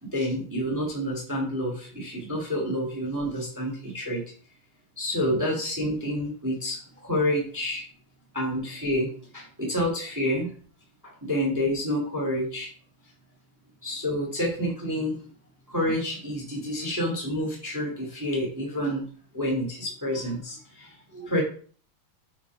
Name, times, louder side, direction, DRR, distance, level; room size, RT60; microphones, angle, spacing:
voice 1, 0.0-4.2 5.0-7.8 8.3-10.5 11.0-12.7 13.8-15.2 15.7-19.0 19.3-21.4, equal, 10° right, -2 dB, 1.0 m, -28 dB
7.3 x 4.8 x 4.8 m, 0.43 s
omnidirectional pair, 4.7 m